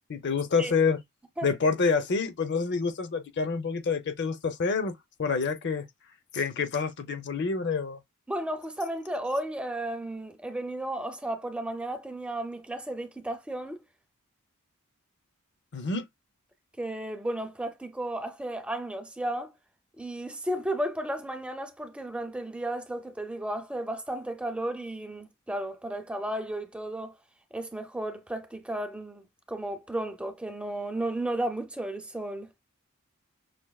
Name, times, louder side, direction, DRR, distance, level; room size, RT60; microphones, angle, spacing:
voice 1, 0.1-1.0 1.4-4.9 5.2-5.8 6.3-8.0 15.7-16.0, left 4 dB, 55° left, 0.6 m, -27 dB
voice 2, 8.3-13.8 16.8-19.5 20.0-27.2 27.5-32.5, right 1 dB, 5° right, 0.4 m, -33 dB
5.9 x 2.5 x 2.3 m
head